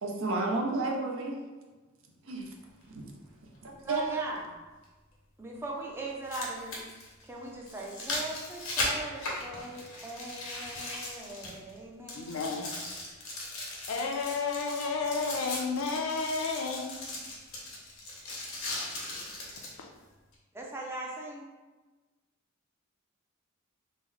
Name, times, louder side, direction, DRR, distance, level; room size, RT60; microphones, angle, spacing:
voice 1, 0.0-1.4 2.2-2.5 2.8-3.1 3.6-4.1, right 3 dB, 70° right, 1 dB, 0.5 m, -32 dB
sound 1, 2.8-2.9 4.8-4.9 6.0-11.8 12.1-19.8 20.3-20.4, left 2 dB, 90° left, 0.9 m, -38 dB
voice 2, 3.8-4.5 5.4-6.9 7.3-12.3 20.5-21.5, right 2 dB, 10° right, -2 dB, 0.5 m, -39 dB
voice 3, 12.1-12.8 13.9-17.2 19.8-19.9, left 4 dB, 70° left, 2 dB, 0.5 m, -32 dB
3.0 x 2.1 x 3.7 m, 1.2 s
head